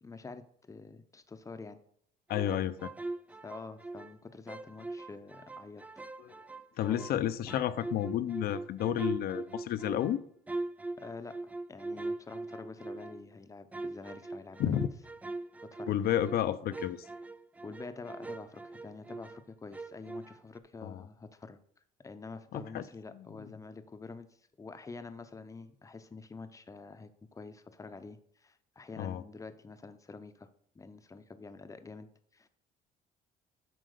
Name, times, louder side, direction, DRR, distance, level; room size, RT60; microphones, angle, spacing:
voice 1, 0.0-1.8 3.4-5.8 6.8-7.2 11.0-14.9 15.6-16.0 17.6-21.6 22.0-30.5 30.7-32.5, left 4 dB, 20° left, 10 dB, 0.7 m, -47 dB
voice 2, 2.3-2.9 6.2-6.3 6.8-10.2 14.6-14.9 15.9-17.0 20.8-21.0 22.5-22.8 29.0-29.2, left 11 dB, 65° left, 14 dB, 0.6 m, -31 dB
sound 1, 2.3-4.2 4.5-7.2 7.5-13.3 13.7-19.5 19.7-20.6, right 2 dB, 10° right, 0.3 m, -41 dB
7.8 x 4.5 x 6.6 m, 0.66 s
cardioid pair, 110°, 17 cm